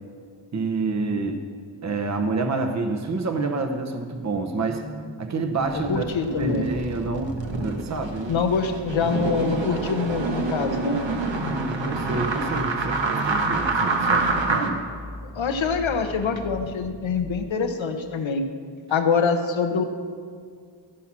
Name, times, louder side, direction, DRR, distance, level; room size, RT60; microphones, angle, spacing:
voice 1, 0.5-1.4 1.8-4.8 5.2-8.4 11.4-14.8, right 3 dB, 35° right, 5 dB, 0.9 m, -28 dB
sound 1, 4.6-17.5, equal, 5° left, 0.8 m, -40 dB
sound 2, 5.6-14.7, right 3 dB, 75° right, 1.2 m, -27 dB
voice 2, 5.7-6.7 8.3-11.0 15.3-18.4 18.9-19.8, left 5 dB, 85° left, 7 dB, 1.0 m, -25 dB
14.5 x 5.9 x 6.1 m, 2.1 s
wide cardioid pair, 65°, 45 cm